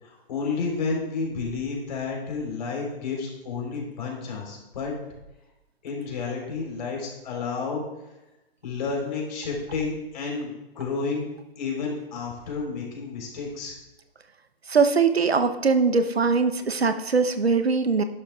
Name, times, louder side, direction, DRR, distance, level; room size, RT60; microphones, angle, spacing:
voice 1, 0.0-5.0 5.8-7.8 8.6-11.3 11.6-13.8, left 4 dB, 45° left, -1 dB, 4.0 m, -31 dB
voice 2, 14.7-18.0, right 5 dB, 80° right, 9 dB, 0.9 m, -21 dB
11.5 x 11.5 x 2.4 m, 0.98 s
figure-of-eight pair, 130°, 31 cm